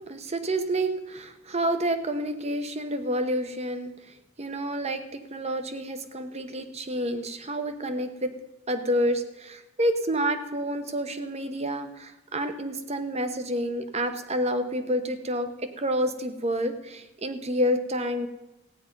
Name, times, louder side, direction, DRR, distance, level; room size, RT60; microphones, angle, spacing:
voice 1, 0.0-8.3 8.7-18.3, equal, 30° right, 9 dB, 0.9 m, -29 dB
15.0 x 9.4 x 5.3 m, 1.0 s
head